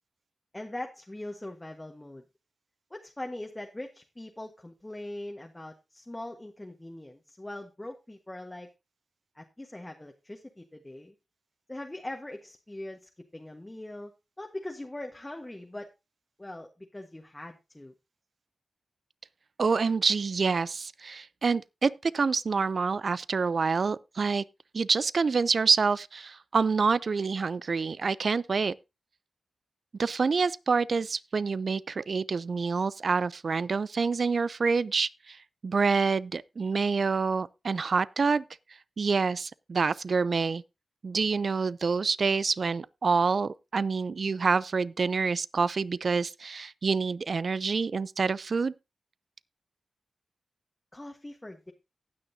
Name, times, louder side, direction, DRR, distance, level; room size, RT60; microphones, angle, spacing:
voice 1, 0.5-2.2 2.9-8.7 9.3-11.1 11.7-14.1 14.4-15.9 16.4-17.9 50.9-51.7, left 1 dB, 20° left, 1.4 m, -41 dB
voice 2, 19.6-24.4 24.7-28.7 30.0-35.4 35.6-38.4 39.0-40.6 41.0-48.7, right 4 dB, 65° right, 0.4 m, -27 dB
18.0 x 6.2 x 2.7 m
cardioid pair, 40°, 0 cm